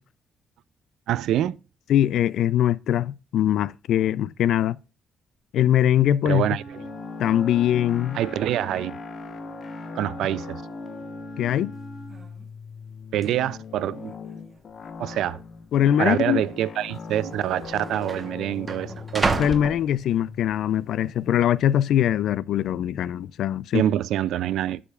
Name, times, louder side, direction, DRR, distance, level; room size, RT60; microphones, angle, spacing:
voice 1, 1.1-1.6 6.3-6.8 8.1-8.9 9.9-10.6 13.1-14.1 15.0-15.4 16.0-19.4 23.7-24.8, right 12 dB, 80° right, 0.3 m, -25 dB
voice 2, 1.9-4.8 5.5-6.5 7.2-8.2 11.4-11.7 15.7-16.4 19.4-23.9, left 11 dB, 75° left, 0.3 m, -22 dB
Wind instrument woodwind instrument, 6.3-12.3, right 2 dB, 15° left, 1.6 m, -42 dB
sound 1, 6.7-23.3, left 6 dB, 55° left, 0.9 m, -41 dB
sound 2, 11.8-11.9 12.1-12.5 13.2-13.3 14.1-14.6 14.8-15.0 15.8-16.0 17.0-17.1 17.3-20.5 21.0-21.4, right 3 dB, 30° right, 1.0 m, -31 dB
14.5 x 5.0 x 2.3 m
cardioid pair, 90°, 0 cm